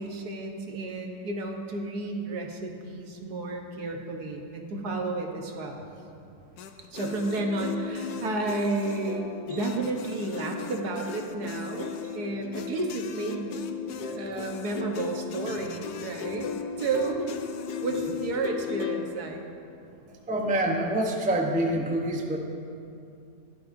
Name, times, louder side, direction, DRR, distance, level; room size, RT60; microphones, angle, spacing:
voice 1, 0.0-5.8 6.9-13.5 14.0-16.5 16.8-17.4 17.8-19.4, right 3 dB, 65° right, 2 dB, 1.5 m, -32 dB
sound 1, 6.6-19.1, left 6 dB, 70° left, 1.1 m, -36 dB
voice 2, 20.1-22.4, right 1 dB, 10° right, 1 dB, 0.4 m, -26 dB
16.0 x 11.5 x 2.6 m, 2.6 s
omnidirectional pair, 1.8 m